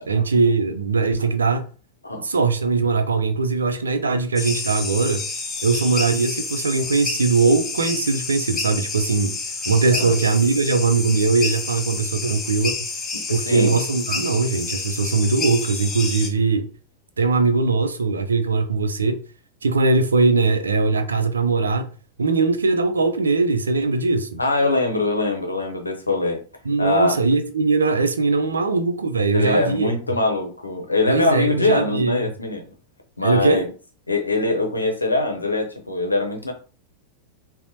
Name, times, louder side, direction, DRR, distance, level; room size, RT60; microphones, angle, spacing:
voice 1, 0.1-1.6 2.2-5.3 5.6-9.4 9.7-12.7 13.3-16.7 17.2-19.2 19.6-21.9 22.2-24.4 26.7-30.0 31.1-32.3 33.2-33.6, right 4 dB, 75° right, 0.4 m, -20 dB
sound 1, 4.4-16.3, left 4 dB, 20° left, 0.6 m, -29 dB
voice 2, 13.1-13.8 24.4-26.4 26.8-27.1 29.3-32.6 33.2-33.6 34.1-36.5, left 2 dB, 80° left, 0.7 m, -22 dB
4.1 x 2.0 x 2.6 m
figure-of-eight pair, 90°, 0 cm